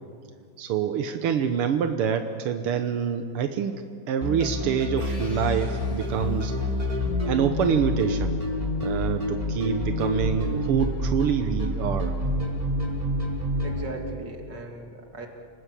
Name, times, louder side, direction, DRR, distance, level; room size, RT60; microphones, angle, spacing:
voice 1, 0.6-6.5 7.2-8.4 8.8-12.1, right 7 dB, 90° right, 7 dB, 2.0 m, -26 dB
sound 1, 4.2-13.8, left 1 dB, 15° right, 4.4 m, -28 dB
sound 2, 5.0-6.9, left 1 dB, 45° left, 6.4 m, -48 dB
voice 2, 13.6-15.3, right 2 dB, 50° right, 2 dB, 3.4 m, -38 dB
29.0 x 19.5 x 8.4 m, 2.2 s
omnidirectional pair, 2.4 m